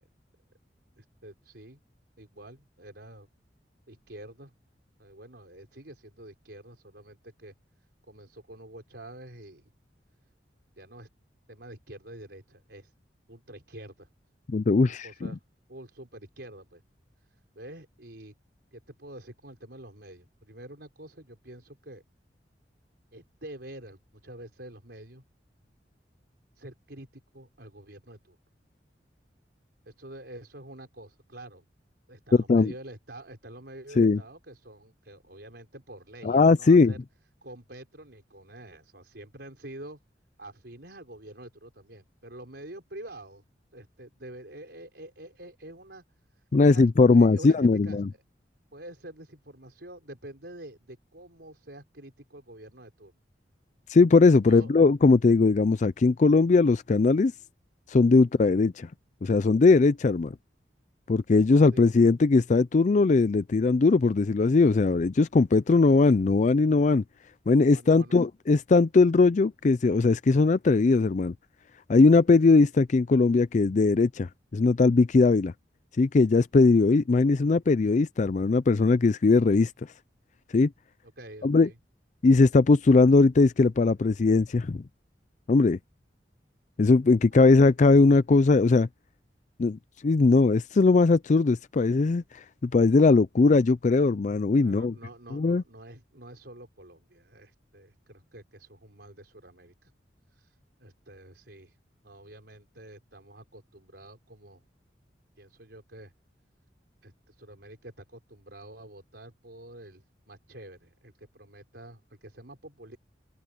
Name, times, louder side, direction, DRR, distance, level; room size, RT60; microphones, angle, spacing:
voice 1, 1.0-1.8 2.2-3.3 3.9-4.5 5.0-7.5 8.1-9.7 10.8-11.1 11.5-12.9 13.3-14.1 14.9-15.4 15.7-16.8 17.3-18.3 18.7-22.0 23.1-25.2 26.6-28.4 29.9-31.6 32.1-37.0 37.4-40.0 40.4-43.4 43.7-46.0 46.4-48.0 48.7-53.1 54.5-54.7 58.3-58.4 61.6-61.9 67.6-68.3 81.2-81.8 87.3-87.5 94.6-99.9 100.3-101.8 102.0-104.6 105.4-106.1 107.0-113.0, right 1 dB, 65° right, 5.5 m, -47 dB
voice 2, 14.5-15.3 32.3-32.7 34.0-34.2 36.2-36.9 46.5-48.1 53.9-57.3 57.9-58.9 59.2-60.3 61.1-67.0 67.5-71.3 71.9-75.5 76.0-79.7 80.5-80.7 81.4-81.7 82.2-84.8 85.5-85.8 86.8-88.9 89.6-94.9 95.3-95.6, left 3 dB, 45° left, 0.4 m, -20 dB
open air
head